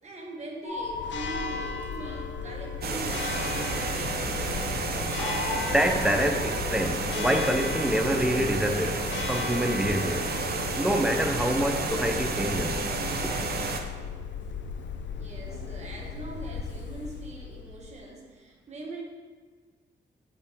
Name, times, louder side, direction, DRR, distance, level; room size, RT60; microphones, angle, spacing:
voice 1, 0.0-4.5 15.1-19.0, right 2 dB, 40° right, -2 dB, 1.3 m, -42 dB
sound 1, 0.6-3.5 5.2-8.0, left 2 dB, 25° left, 1.0 m, -39 dB
Church bell, 0.8-18.0, left 5 dB, 85° left, 0.6 m, -36 dB
sound 2, 2.8-13.8, right 3 dB, 60° right, 0.6 m, -31 dB
voice 2, 5.6-10.3 10.8-12.8 13.2-13.3, equal, 5° right, 5 dB, 0.4 m, -26 dB
7.9 x 5.5 x 3.4 m, 1.5 s
wide cardioid pair, 180°, 18 cm